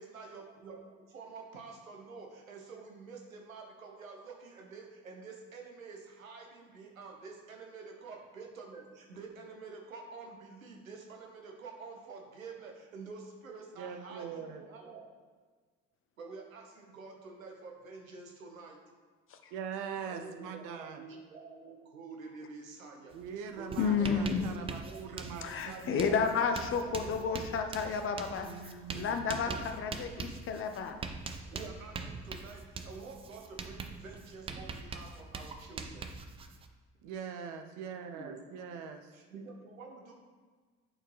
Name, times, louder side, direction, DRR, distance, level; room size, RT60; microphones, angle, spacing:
voice 1, 0.0-15.1 16.2-18.8 20.0-25.9 26.4-27.8 29.4-29.6 31.5-36.1 38.1-38.4 39.1-40.1, right 4 dB, 80° right, 1 dB, 0.9 m, -48 dB
voice 2, 13.8-14.6 19.5-21.0 23.1-26.3 28.4-29.4 37.0-39.1, right 7 dB, 50° right, 6 dB, 0.7 m, -42 dB
Writing, 23.1-23.3 23.5-36.7, right 4 dB, 15° right, 0.3 m, -43 dB
voice 3, 23.8-24.4 25.4-29.5 29.8-31.0, left 6 dB, 30° left, 6 dB, 0.6 m, -31 dB
8.8 x 4.4 x 3.2 m, 1.5 s
figure-of-eight pair, 55°, 40 cm